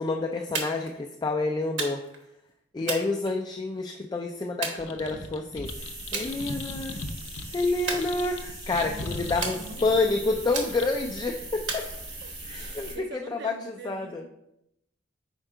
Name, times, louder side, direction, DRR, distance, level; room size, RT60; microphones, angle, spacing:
voice 1, 0.0-2.0 2.7-5.7 6.1-7.0 7.5-11.8 12.4-14.2, left 3 dB, 20° left, 0.3 m, -28 dB
sound 1, 0.5-1.0 1.8-2.2 2.9-3.8 4.6-5.4 6.1-6.3 6.7-7.1 7.9-8.6 9.4-10.0 10.5-11.1 11.7-12.5, right 4 dB, 90° right, 1.2 m, -35 dB
sound 2, 4.8-12.2, left 2 dB, 85° left, 0.6 m, -40 dB
sound 3, 5.6-13.0, right 2 dB, 35° right, 1.7 m, -40 dB
voice 2, 8.9-10.3 11.9-14.3, right 4 dB, 65° right, 0.4 m, -45 dB
4.5 x 4.4 x 4.9 m
head